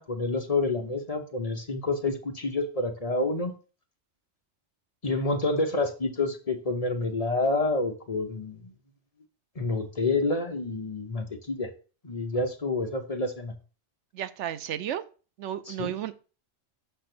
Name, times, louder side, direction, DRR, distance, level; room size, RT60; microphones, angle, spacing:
voice 1, 0.0-3.5 5.0-8.7 9.6-11.7 12.0-13.5 15.6-15.9, left 2 dB, 35° left, 4 dB, 0.9 m, -28 dB
voice 2, 14.1-15.0 15.4-16.2, right 10 dB, 80° right, 12 dB, 0.9 m, -33 dB
6.6 x 3.3 x 6.0 m, 0.35 s
omnidirectional pair, 1.2 m